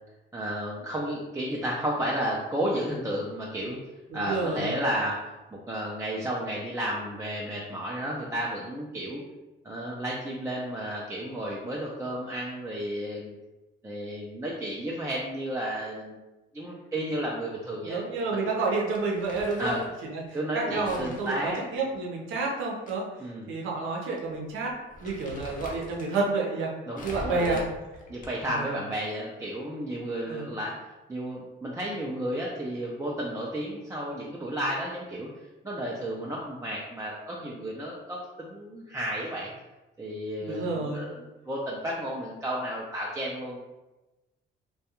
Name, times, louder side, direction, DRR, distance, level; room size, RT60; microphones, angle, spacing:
voice 1, 0.3-3.8 4.1-9.2 9.6-13.3 13.8-16.2 16.5-18.0 18.3-18.5 19.6-19.8 20.3-21.6 23.2-23.5 26.9-27.6 28.1-30.8 31.1-35.3 35.6-39.5 40.0-41.2 41.4-43.6, right 1 dB, 15° right, -4 dB, 0.4 m, -32 dB
voice 2, 4.1-4.8 17.8-19.7 20.1-20.2 20.5-23.0 23.5-24.7 25.0-26.7 27.0-27.6 28.4-28.8 30.3-30.5 40.4-41.1, right 3 dB, 85° right, -2 dB, 0.7 m, -29 dB
Crumpling crinkling, 18.9-19.9 20.8-22.9 23.3-23.4 24.2-24.4 24.7-26.3 27.0-28.6, left 1 dB, 40° left, 0.6 m, -43 dB
2.4 x 2.2 x 2.8 m, 1.1 s
cardioid pair, 90°, 20 cm